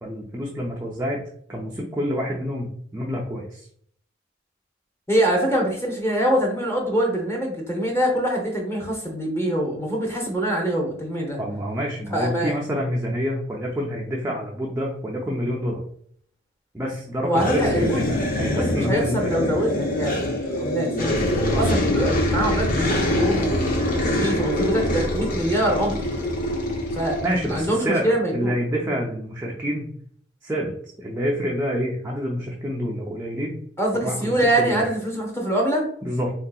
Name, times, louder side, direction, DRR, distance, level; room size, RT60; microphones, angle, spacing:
voice 1, 0.0-1.2 1.5-3.7 11.4-15.8 16.7-19.5 27.2-29.9 30.4-33.6 33.9-34.9 36.0-36.3, equal, 10° right, -3 dB, 0.4 m, -27 dB
voice 2, 5.1-11.4 12.1-12.5 17.2-18.0 18.4-26.0 26.9-27.2 27.5-28.5 33.8-35.9, right 1 dB, 15° left, -2 dB, 0.7 m, -24 dB
sound 1, 17.4-27.7, left 1 dB, 45° left, 0.6 m, -24 dB
3.3 x 2.7 x 2.3 m, 0.63 s
head